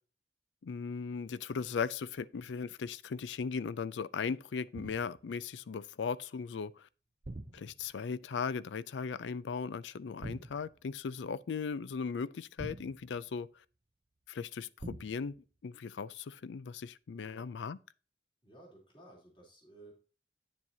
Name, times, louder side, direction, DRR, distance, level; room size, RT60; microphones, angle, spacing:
voice 1, 0.6-6.9 7.5-13.5 14.3-15.4 15.6-17.8, left 5 dB, 80° left, 0.4 m, -38 dB
sound 1, 4.7-5.3 7.2-8.0 10.2-10.8 12.6-13.4 14.8-15.4, right 2 dB, 35° right, 0.6 m, -45 dB
voice 2, 17.1-17.6 18.4-19.9, right 2 dB, 30° left, 3.3 m, -56 dB
9.5 x 7.4 x 2.7 m
head